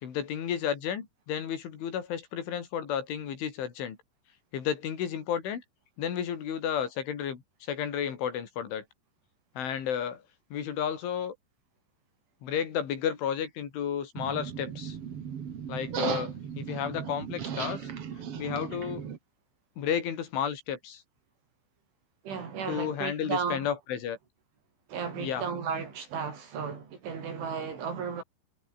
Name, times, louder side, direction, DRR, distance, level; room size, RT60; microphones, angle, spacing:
voice 1, 0.0-4.0 4.5-5.6 6.0-7.4 7.7-8.9 9.6-10.2 10.5-11.3 12.4-15.0 15.7-17.9 18.4-19.1 19.8-21.0 22.7-24.2 25.2-25.4, left 8 dB, 80° left, 6.0 m, -32 dB
sound 1, 14.1-19.2, right 8 dB, 50° right, 1.9 m, -36 dB
voice 2, 22.2-23.7 24.9-28.2, right 6 dB, 80° right, 7.7 m, -34 dB
omnidirectional pair, 5.4 m